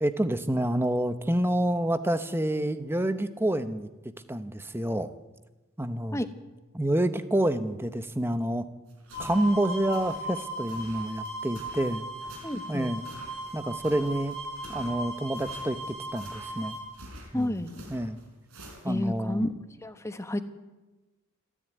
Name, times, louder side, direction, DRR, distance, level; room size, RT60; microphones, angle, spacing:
voice 1, 0.0-3.9 4.3-5.1 5.8-6.2 6.7-8.7 9.2-12.1 12.7-13.1 13.5-14.4 14.7-16.8 17.3-17.5 17.9-18.2 18.8-19.4, right 1 dB, 10° right, 11 dB, 1.0 m, -28 dB
sound 1, 8.9-19.2, right 1 dB, 75° right, 5.1 m, -49 dB
sound 2, 9.1-16.8, right 1 dB, 45° right, 7.8 m, -37 dB
voice 2, 12.4-12.9 17.3-17.7 18.9-19.5 19.8-20.4, left 1 dB, 15° left, 9 dB, 1.1 m, -30 dB
27.0 x 11.5 x 9.3 m, 1.1 s
head